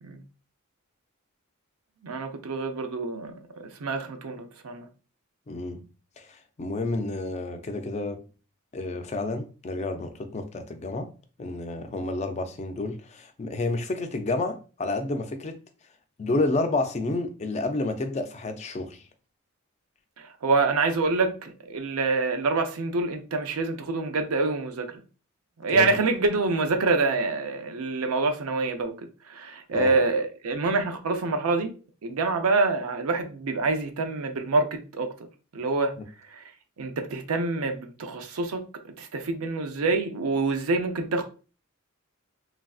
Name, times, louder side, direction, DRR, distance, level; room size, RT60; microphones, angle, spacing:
voice 1, 2.0-4.9 20.2-24.9 25.6-31.7 32.0-35.1 35.5-35.9 36.3-36.4 36.8-41.2, right 3 dB, 80° right, 0.5 m, -26 dB
voice 2, 5.5-5.8 6.2-8.3 8.7-11.1 11.4-15.6 16.2-19.0 25.7-25.9 29.7-30.0, left 2 dB, 30° left, 0.3 m, -30 dB
3.2 x 2.5 x 2.3 m
head